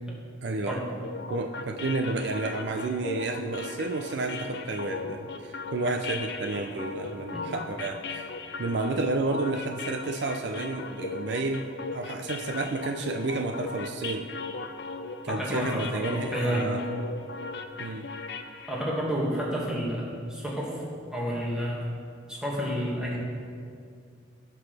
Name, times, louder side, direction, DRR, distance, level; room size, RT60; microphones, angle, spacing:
voice 1, 0.4-0.8 1.3-8.3 8.6-14.3 15.2-16.8 17.8-18.1, right 3 dB, 60° right, 5 dB, 0.5 m, -31 dB
sound 1, 1.0-18.9, left 4 dB, 60° left, 0.5 m, -38 dB
voice 2, 15.3-16.7 18.7-21.9 22.3-23.2, equal, 5° right, -5 dB, 1.8 m, -30 dB
16.5 x 6.1 x 3.4 m, 2.2 s
head